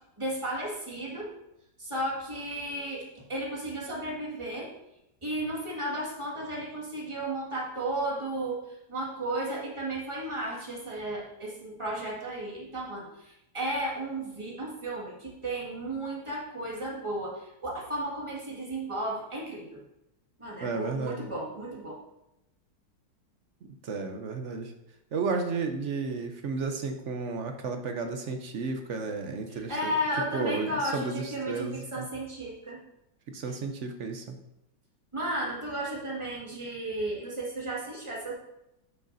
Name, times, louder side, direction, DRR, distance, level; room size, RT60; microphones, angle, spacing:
voice 1, 0.2-1.3 1.8-4.7 5.2-19.8 20.4-22.0 29.5-32.8 35.1-38.3, right 1 dB, 15° right, -4 dB, 1.9 m, -34 dB
voice 2, 20.6-21.2 23.8-24.7 25.1-29.9 30.3-32.0 33.3-34.4, right 4 dB, 60° right, 5 dB, 0.8 m, -33 dB
10.5 x 6.3 x 2.6 m, 0.85 s
omnidirectional pair, 1.9 m